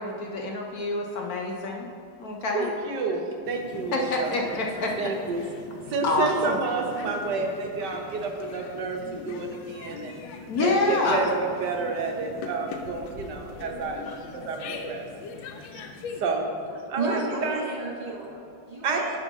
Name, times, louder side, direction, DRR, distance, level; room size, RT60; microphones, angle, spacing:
voice 1, 0.0-1.9 2.2-2.7 3.9-4.9 6.0-6.6 10.5-11.2 14.0-14.2, left 3 dB, 65° left, 0 dB, 1.0 m, -27 dB
voice 2, 2.5-4.4 5.0-5.4 5.9-9.0 9.2-10.2 10.6-14.0 14.3-15.1 15.6-15.8 16.2-16.5 16.9-17.6 18.8-19.2, right 4 dB, 65° right, 2 dB, 1.5 m, -29 dB
sound 1, 3.4-16.2, left 4 dB, 85° left, 1.4 m, -41 dB
voice 3, 16.9-19.2, right 2 dB, 50° right, -4 dB, 0.4 m, -33 dB
10.5 x 3.6 x 6.0 m, 2.4 s
omnidirectional pair, 2.0 m